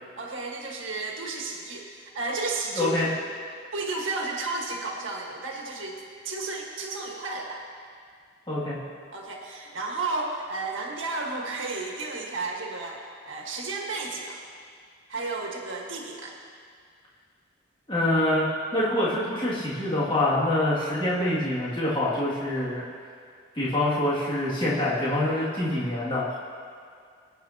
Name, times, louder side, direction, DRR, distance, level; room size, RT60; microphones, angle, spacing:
voice 1, 0.2-3.1 3.7-7.6 9.1-14.4 15.1-16.3, right 3 dB, 80° right, -1 dB, 1.7 m, -33 dB
voice 2, 2.8-3.1 8.5-8.8 17.9-22.8 23.5-26.4, left 1 dB, 25° left, -9 dB, 2.5 m, -25 dB
20.5 x 9.3 x 2.9 m, 2.2 s
head